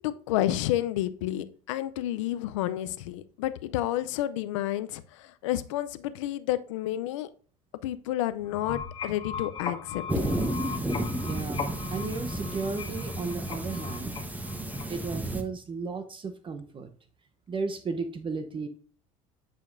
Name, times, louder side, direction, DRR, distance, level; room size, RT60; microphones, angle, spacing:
voice 1, 0.0-7.3 7.8-10.3, left 13 dB, 90° left, 0.5 m, -30 dB
sound 1, 8.4-15.2, left 6 dB, 35° left, 1.6 m, -39 dB
sound 2, 10.1-15.4, right 1 dB, 10° right, 1.0 m, -32 dB
voice 2, 11.2-14.1 14.9-16.9 17.5-18.7, right 4 dB, 35° right, 0.9 m, -34 dB
9.1 x 5.2 x 2.6 m
supercardioid pair, 95°, 16 cm